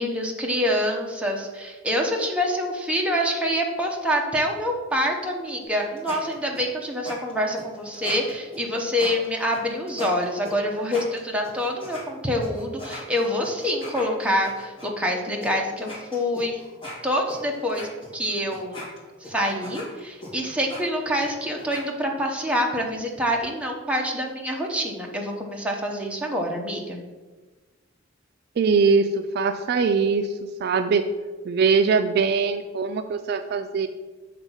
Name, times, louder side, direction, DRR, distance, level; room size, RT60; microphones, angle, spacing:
voice 1, 0.0-16.6 17.0-18.9 19.2-27.0, equal, 5° right, 0 dB, 0.9 m, -26 dB
sound 1, 5.6-12.0 12.4-14.9 15.4-15.5 15.8-21.8, left 1 dB, 25° left, 2.2 m, -40 dB
voice 2, 28.6-30.3 30.6-31.1 31.5-33.9, right 5 dB, 55° right, 8 dB, 0.3 m, -22 dB
7.4 x 3.5 x 5.6 m, 1.3 s
head